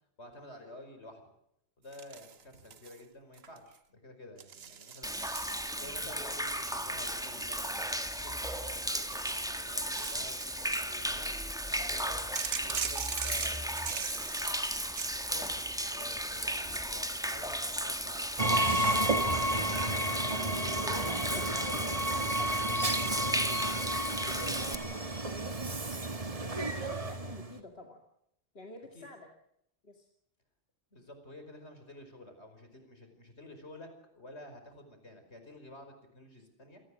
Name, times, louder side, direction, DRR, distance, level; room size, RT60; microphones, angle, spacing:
voice 1, 0.2-1.2 1.8-5.2 5.8-11.3 11.7-14.2 15.0-18.3 19.2-21.9 24.2-24.6 28.9-29.1 30.9-36.8, left 1 dB, 85° left, 7 dB, 5.5 m, -51 dB
sound 1, 1.9-3.0 3.3-3.8 4.4-6.0 6.7-8.4 8.9-11.0 12.4-15.2, right 7 dB, 65° right, 1.3 m, -41 dB
Human voice / Rain / Stream, 5.0-24.7, equal, 5° right, 1.7 m, -35 dB
Train, 18.4-27.6, right 1 dB, 35° right, 1.8 m, -31 dB
voice 2, 20.7-25.7 26.4-28.0 28.5-29.3 29.8-30.1, left 2 dB, 65° left, 3 dB, 2.5 m, -48 dB
27.5 x 19.5 x 6.4 m, 0.78 s
omnidirectional pair, 1.1 m